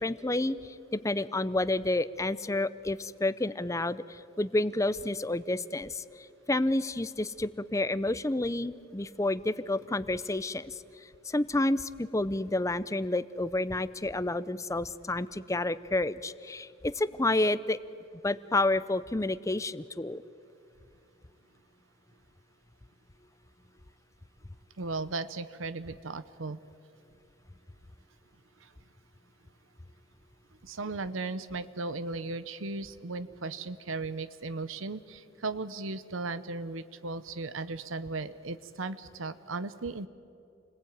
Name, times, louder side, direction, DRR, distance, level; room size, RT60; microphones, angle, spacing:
voice 1, 0.0-6.0 6.5-10.7 11.3-17.8 18.2-20.2, left 2 dB, 15° left, 16 dB, 0.6 m, -30 dB
voice 2, 24.8-26.6 28.6-28.7 30.6-40.1, right 3 dB, 90° right, 13 dB, 0.9 m, -36 dB
29.0 x 21.0 x 9.4 m, 2.6 s
head